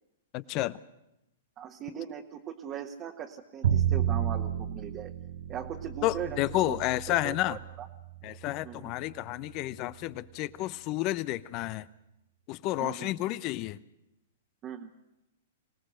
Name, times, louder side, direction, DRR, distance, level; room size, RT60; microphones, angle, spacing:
voice 1, 0.3-0.8 6.0-7.6 8.2-11.8 12.5-13.8, left 16 dB, 40° left, 0.8 m, -31 dB
voice 2, 1.6-5.1 5.5-6.4 6.7-6.8 7.1-7.9 8.6-8.9 12.8-13.1 14.6-14.9, right 9 dB, 30° right, 1.5 m, -39 dB
Bowed string instrument, 3.6-9.8, right 9 dB, 65° right, 0.8 m, -32 dB
25.5 x 18.5 x 6.5 m
hypercardioid pair, 120°, 0 cm